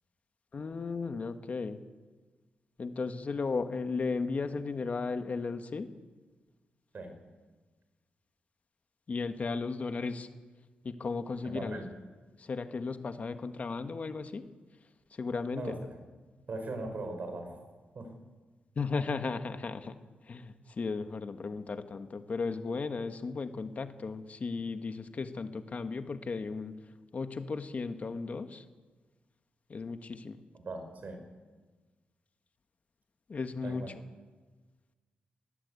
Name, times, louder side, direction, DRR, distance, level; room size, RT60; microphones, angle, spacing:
voice 1, 0.5-1.8 2.8-5.9 9.1-10.3 10.8-11.8 12.4-14.5 15.2-15.9 18.8-19.9 20.3-26.8 27.1-28.6 29.7-30.4 33.3-33.8, left 4 dB, 45° left, 8 dB, 1.4 m, -35 dB
voice 2, 11.4-11.9 15.5-16.0 16.5-17.6 17.9-18.1 30.5-31.2 33.6-33.9, right 2 dB, 55° right, 5 dB, 5.5 m, -39 dB
20.0 x 18.0 x 8.4 m, 1.3 s
cardioid pair, 95°, 3 cm